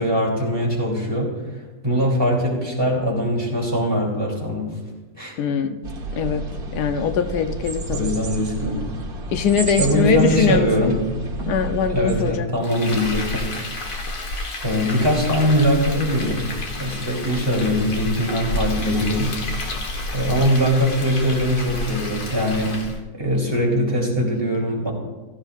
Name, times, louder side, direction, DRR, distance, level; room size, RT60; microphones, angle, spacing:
voice 1, 0.0-1.3 1.8-4.7 5.2-5.3 5.6-5.7 7.9-8.8 9.8-11.1 11.4-11.5 11.9-13.5 14.6-16.4 16.7-19.4 20.1-22.8 23.1-24.9, equal, 15° right, -3 dB, 2.9 m, -21 dB
voice 2, 5.4-5.8 6.1-6.5 6.7-8.1 9.3-10.9 11.5-12.5, left 7 dB, 80° left, 9 dB, 1.2 m, -22 dB
sound 1, 5.8-12.3, right 2 dB, 65° right, 1.7 m, -31 dB
Frying (food), 12.6-23.0, left 2 dB, 55° left, 1.7 m, -30 dB
16.0 x 15.0 x 2.4 m, 1.2 s
omnidirectional pair, 1.7 m